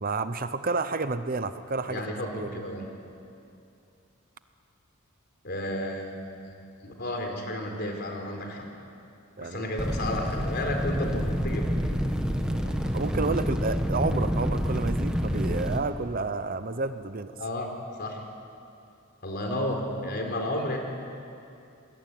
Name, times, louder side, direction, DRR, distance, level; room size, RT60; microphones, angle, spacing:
voice 1, 0.0-2.1 2.3-2.5 9.4-9.7 12.4-17.3, right 3 dB, 40° right, 11 dB, 0.8 m, -30 dB
voice 2, 1.8-2.9 5.4-8.7 9.4-11.8 17.4-18.2 19.2-20.8, left 1 dB, 50° left, 3 dB, 4.5 m, -32 dB
sound 1, 9.8-15.8, equal, 5° right, 1.6 m, -28 dB
28.0 x 21.5 x 9.4 m, 2.6 s
head